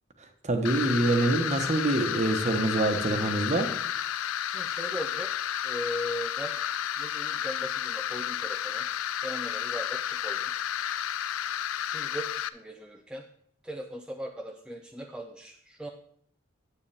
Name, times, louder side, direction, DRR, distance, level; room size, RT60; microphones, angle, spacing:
voice 1, 0.4-3.7, right 2 dB, 35° right, 6 dB, 1.1 m, -25 dB
sound 1, 0.6-12.5, left 10 dB, 85° left, 0.4 m, -32 dB
voice 2, 4.4-5.3 5.6-6.6 7.0-8.9 9.2-10.5 11.9-13.3 13.6-15.9, equal, 5° right, 3 dB, 0.5 m, -38 dB
9.9 x 8.3 x 3.5 m, 0.66 s
head